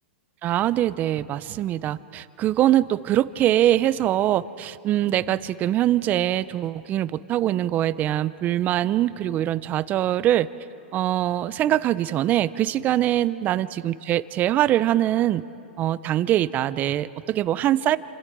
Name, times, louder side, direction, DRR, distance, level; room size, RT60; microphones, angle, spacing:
voice 1, 0.4-10.5 10.9-15.4 15.8-18.0, right 13 dB, 30° right, 17 dB, 0.6 m, -23 dB
28.0 x 26.5 x 4.7 m, 2.7 s
hypercardioid pair, 130°, 6 cm